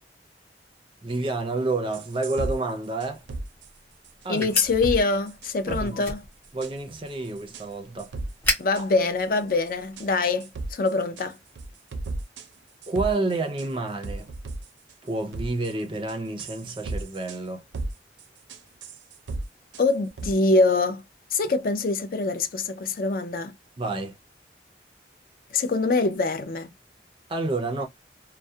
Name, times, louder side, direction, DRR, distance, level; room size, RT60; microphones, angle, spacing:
voice 1, 1.0-3.2 4.2-4.5 5.7-6.0 6.5-8.1 12.9-14.3 15.0-17.6 23.8-24.2 27.3-27.9, right 2 dB, 30° right, 0.5 m, -29 dB
sound 1, 1.9-2.6 3.0-3.7 4.0-5.0 5.3-6.1 6.4-6.7 7.1-7.6 8.0-8.3 8.7-8.8 9.2-9.7 10.0-10.1 10.4-11.2 11.5-12.5 12.8-13.7 14.0-14.9 15.3-15.7 16.1-17.4 17.7-17.9 18.2-19.4 19.7-19.9 20.2-20.3, right 2 dB, 85° right, 0.5 m, -34 dB
sound 2, 3.0-10.2, equal, 10° left, 0.8 m, -36 dB
voice 2, 4.3-6.2 8.6-11.4 19.8-21.0 21.3-23.5 25.5-26.7, left 3 dB, 50° left, 0.4 m, -24 dB
2.3 x 2.0 x 2.6 m
head